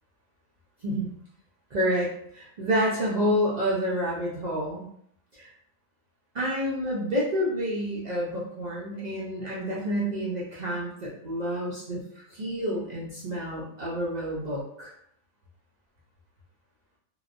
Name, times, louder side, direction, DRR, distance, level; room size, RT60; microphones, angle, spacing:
voice 1, 1.7-4.8 5.3-5.5 6.3-14.9, equal, 65° right, -6 dB, 0.4 m, -29 dB
2.9 x 2.0 x 2.4 m, 0.67 s
omnidirectional pair, 1.4 m